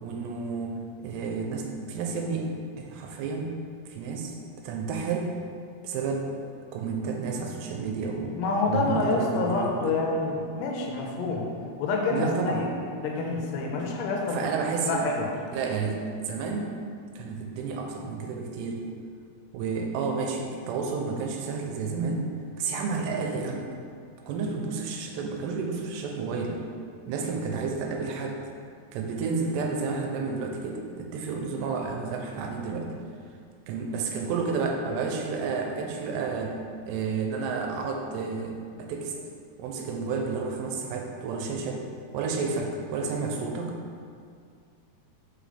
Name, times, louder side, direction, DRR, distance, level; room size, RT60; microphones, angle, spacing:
voice 1, 0.0-2.5 2.8-3.6 3.9-4.3 4.6-5.3 5.8-6.3 6.7-8.4 8.7-9.9 12.1-12.7 14.3-15.1 15.5-16.8 17.2-18.9 19.5-22.3 22.6-23.7 24.3-26.6 27.1-28.4 28.9-32.9 33.7-36.6 36.9-39.2 39.6-41.8 42.1-43.8, right 4 dB, 85° right, 1 dB, 2.8 m, -31 dB
voice 2, 8.4-11.5 11.8-12.7 12.9-14.5 14.8-15.3, left 3 dB, 85° left, 0 dB, 2.7 m, -27 dB
6.0 x 5.0 x 3.3 m, 2.3 s
omnidirectional pair, 4.9 m